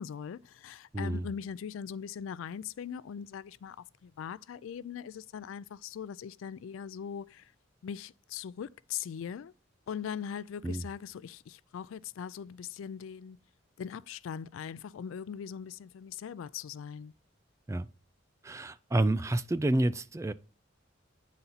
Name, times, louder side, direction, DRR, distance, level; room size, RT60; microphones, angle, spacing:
voice 1, 0.0-7.5 7.8-9.5 9.9-13.4 13.8-17.1, left 7 dB, 85° left, 0.3 m, -40 dB
voice 2, 0.9-1.3 10.6-10.8 17.7-17.9 18.4-20.3, right 1 dB, 15° right, 0.3 m, -29 dB
9.0 x 4.2 x 4.0 m
head